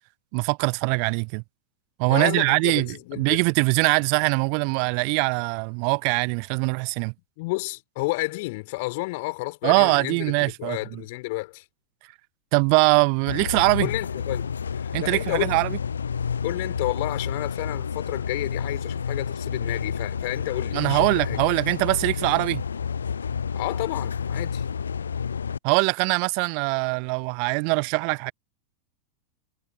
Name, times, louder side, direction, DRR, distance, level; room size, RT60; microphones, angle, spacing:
voice 1, 0.3-1.4 2.0-2.9 3.2-7.1 9.6-11.0 12.5-13.9 14.9-15.8 20.7-22.6 25.6-28.3, right 40 dB or more, 45° right, 0.6 m, -22 dB
voice 2, 2.1-3.4 7.4-11.6 13.8-15.6 16.4-21.4 23.5-24.6, left 24 dB, 50° left, 4.5 m, -31 dB
sound 1, 13.3-25.6, left 6 dB, 70° left, 0.8 m, -30 dB
figure-of-eight pair, 90°, 0 cm